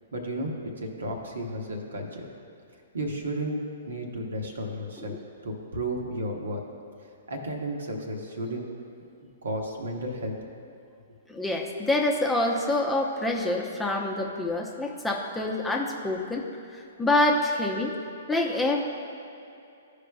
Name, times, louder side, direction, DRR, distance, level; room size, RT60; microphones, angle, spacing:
voice 1, 0.1-0.7 1.0-2.3 2.9-3.6 3.9-5.1 5.4-6.6 7.3-8.6 9.4-10.4, right 1 dB, 70° right, 1 dB, 1.1 m, -33 dB
voice 2, 11.3-16.5 16.7-17.9 18.3-18.8, left 2 dB, 5° left, 0 dB, 0.7 m, -26 dB
13.5 x 4.9 x 2.3 m, 2.6 s
figure-of-eight pair, 120°, 0 cm